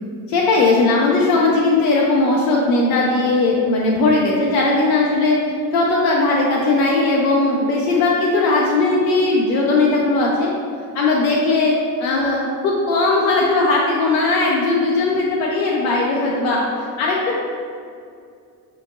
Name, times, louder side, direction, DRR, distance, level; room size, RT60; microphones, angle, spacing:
voice 1, 0.3-5.4 5.7-10.5 10.9-11.7 12.0-17.4, left 3 dB, 75° left, -3 dB, 0.6 m, -18 dB
5.7 x 2.8 x 2.5 m, 2.3 s
figure-of-eight pair, 40°, 47 cm